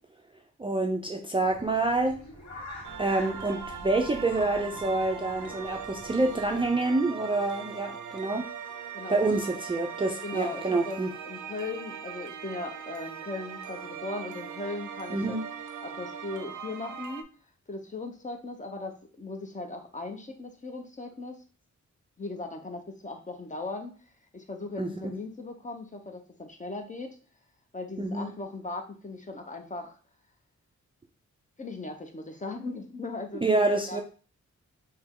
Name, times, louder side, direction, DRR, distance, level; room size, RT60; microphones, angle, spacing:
voice 1, 0.6-2.2 3.0-8.5 9.1-11.1 15.1-15.4 24.8-24.9 28.0-28.3 33.4-34.0, right 2 dB, 20° right, 2 dB, 0.3 m, -27 dB
sound 1, 1.4-6.7, left 1 dB, 75° left, 1.7 m, -46 dB
sound 2, 2.8-17.2, right 7 dB, 80° right, 0.4 m, -40 dB
voice 2, 8.9-9.4 10.2-11.0 11.2-15.4 15.8-17.2 17.7-21.4 22.2-23.9 24.3-27.2 27.7-29.9 31.6-34.0, left 3 dB, 25° left, 4 dB, 0.6 m, -38 dB
3.3 x 2.9 x 3.6 m, 0.38 s
wide cardioid pair, 140°, 30 cm